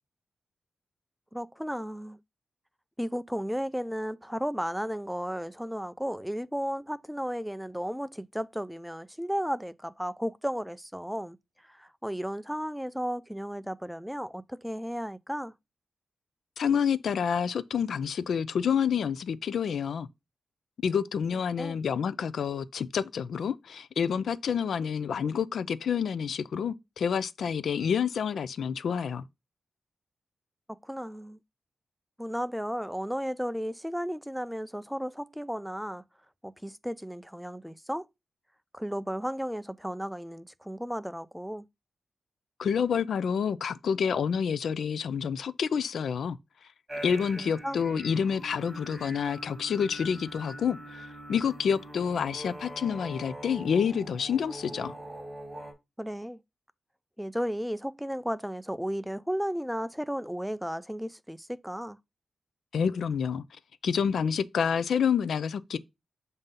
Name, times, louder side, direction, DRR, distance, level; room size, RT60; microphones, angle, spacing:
voice 1, 1.3-2.2 3.0-11.4 11.6-15.5 21.6-21.8 30.7-31.4 32.2-36.0 36.4-38.1 38.7-41.7 47.4-47.8 56.0-56.4 57.2-62.0, equal, ahead, 0.3 m, -34 dB
voice 2, 16.6-20.1 20.8-29.3 42.6-46.4 47.0-54.9 62.7-63.4 63.8-65.8, left 7 dB, 80° left, 0.4 m, -28 dB
sound 1, 46.9-55.7, right 1 dB, 20° right, 3.3 m, -43 dB
7.2 x 2.7 x 5.2 m
wide cardioid pair, 115°, 0 cm